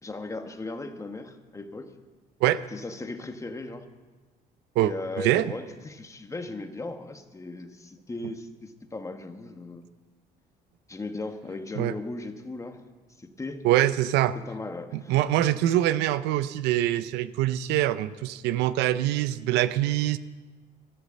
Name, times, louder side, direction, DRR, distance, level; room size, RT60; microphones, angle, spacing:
voice 1, 0.0-1.9 2.7-3.9 4.8-9.8 10.9-12.8 13.2-13.7 14.3-15.1, left 2 dB, 20° left, 7 dB, 1.2 m, -37 dB
voice 2, 4.8-5.5 11.8-11.9 13.6-14.4 14.9-20.2, right 13 dB, 90° right, 14 dB, 0.6 m, -24 dB
12.0 x 11.5 x 7.4 m, 1.3 s
cardioid pair, 110°, 17 cm